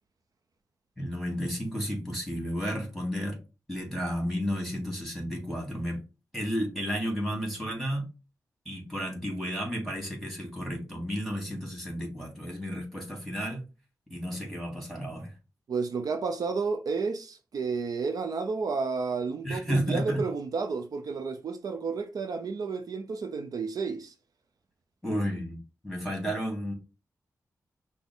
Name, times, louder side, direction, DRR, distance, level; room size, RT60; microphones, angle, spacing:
voice 1, 1.0-3.4 3.7-6.0 6.3-8.1 8.7-13.6 14.1-15.3 19.4-20.2 25.0-26.7, equal, ahead, 2.5 m, -32 dB
voice 2, 15.7-24.1, right 4 dB, 70° right, 0.6 m, -31 dB
5.9 x 2.1 x 3.7 m
cardioid pair, 65°, 6 cm